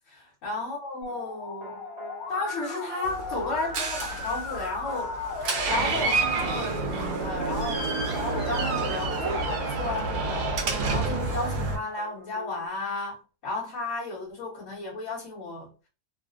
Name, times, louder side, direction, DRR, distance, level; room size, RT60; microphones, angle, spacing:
voice 1, 0.1-1.8 2.3-5.1 5.7-15.7, left 3 dB, 55° left, 1.4 m, -33 dB
Musical instrument, 1.0-6.6, left 4 dB, 75° left, 1.2 m, -37 dB
sound 1, 1.1-12.7, right 3 dB, 25° right, 0.9 m, -45 dB
Door, 3.0-11.8, right 3 dB, 75° right, 1.2 m, -29 dB
3.2 x 2.4 x 2.5 m
omnidirectional pair, 1.7 m